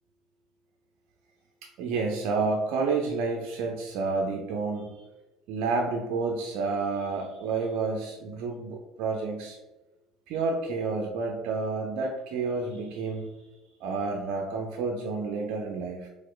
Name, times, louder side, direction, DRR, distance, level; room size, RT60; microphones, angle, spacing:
voice 1, 1.8-5.0 5.5-9.6 10.3-13.3 13.8-16.1, right 4 dB, 65° right, 0 dB, 0.4 m, -30 dB
4.2 x 2.4 x 2.3 m, 1.1 s
hypercardioid pair, 70°, 0 cm